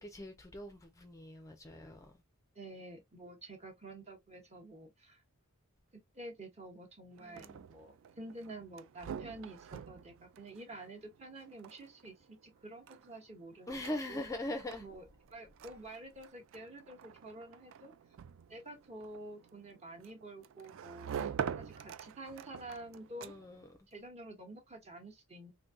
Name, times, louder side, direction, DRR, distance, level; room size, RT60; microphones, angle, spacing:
voice 1, 0.0-2.1 7.2-7.7 13.7-14.9 23.2-23.7, left 1 dB, 15° left, 0.4 m, -41 dB
voice 2, 2.5-5.2 6.1-14.2 14.8-15.0 15.3-17.9 18.5-21.1 21.6-23.4 23.9-25.5, right 2 dB, 30° right, 1.1 m, -49 dB
sound 1, 7.1-23.7, right 7 dB, 60° right, 0.3 m, -46 dB
3.8 x 2.7 x 2.4 m
head